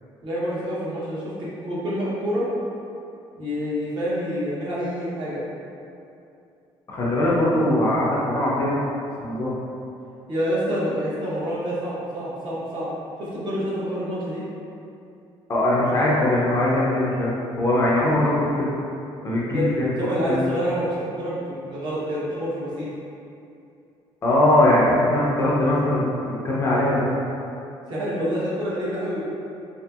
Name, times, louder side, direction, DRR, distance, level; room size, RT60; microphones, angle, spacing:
voice 1, 0.2-2.5 3.4-5.4 10.3-12.9 13.2-14.4 19.5-19.7 20.0-22.9 27.9-29.2, equal, 50° right, -8 dB, 0.8 m, -27 dB
voice 2, 6.9-8.8 9.2-9.5 15.5-17.3 17.6-18.7 19.2-19.9 20.3-20.5 24.2-27.1, left 1 dB, 30° left, -6 dB, 0.5 m, -21 dB
2.7 x 2.5 x 2.3 m, 2.7 s
cardioid pair, 125°, 10 cm